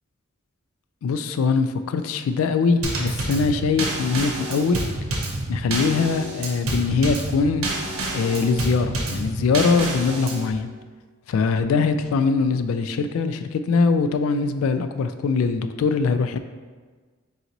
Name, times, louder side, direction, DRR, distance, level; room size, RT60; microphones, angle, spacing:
voice 1, 1.0-4.8 5.5-7.7 8.1-10.7 11.3-16.4, left 4 dB, 75° left, 10 dB, 0.3 m, -22 dB
Drum kit / Snare drum / Bass drum, 2.8-10.5, right 2 dB, 80° right, 0.7 m, -28 dB
4.0 x 3.0 x 3.8 m, 1.4 s
head